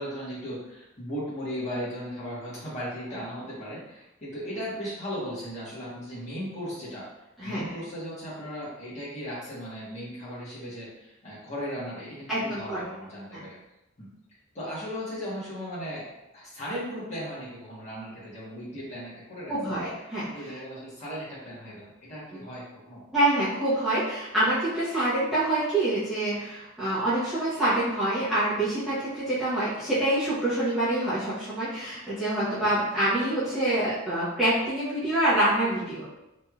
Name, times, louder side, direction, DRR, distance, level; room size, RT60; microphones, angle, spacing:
voice 1, 0.0-7.0 7.4-13.5 14.0-14.1 14.5-16.0 16.3-19.8 20.3-23.0, equal, 35° left, -8 dB, 1.1 m, -37 dB
voice 2, 7.4-7.8 12.3-12.9 13.3-13.4 19.5-20.3 22.3-22.5 23.1-36.1, right 1 dB, ahead, -14 dB, 0.8 m, -26 dB
3.0 x 2.7 x 2.3 m, 0.93 s
head